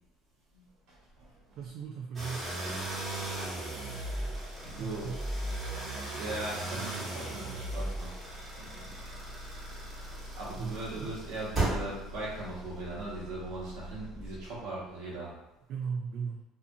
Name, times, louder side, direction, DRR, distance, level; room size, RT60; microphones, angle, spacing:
voice 1, 1.5-2.5 4.8-5.2 10.6-11.2 15.7-16.4, right 6 dB, 60° right, 0 dB, 0.3 m, -37 dB
sound 1, 2.1-14.5, right 1 dB, 30° right, 1.1 m, -37 dB
voice 2, 3.8-4.3 4.6-5.2 6.1-8.1 8.6-9.0 10.4-15.4, right 2 dB, 80° right, -6 dB, 1.1 m, -39 dB
2.7 x 2.5 x 2.6 m, 0.97 s
cardioid pair, 115°, 0 cm